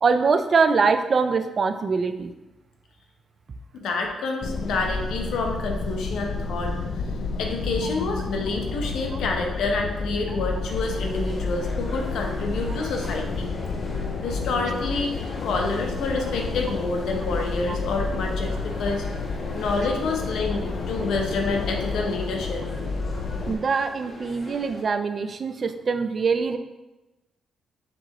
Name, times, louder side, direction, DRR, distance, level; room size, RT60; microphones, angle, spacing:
voice 1, 0.0-2.3 17.7-17.8 23.5-26.6, right 5 dB, 40° right, 9 dB, 0.3 m, -23 dB
voice 2, 3.7-6.8 7.4-13.5 14.2-15.1 15.4-19.0 19.5-22.6, left 3 dB, 80° left, 2 dB, 0.8 m, -28 dB
sound 1, 4.4-23.6, left 4 dB, 55° left, 0.4 m, -30 dB
sound 2, 10.6-24.8, left 1 dB, 20° left, 1.1 m, -44 dB
4.5 x 3.7 x 2.9 m, 1.0 s
cardioid pair, 125°, 0 cm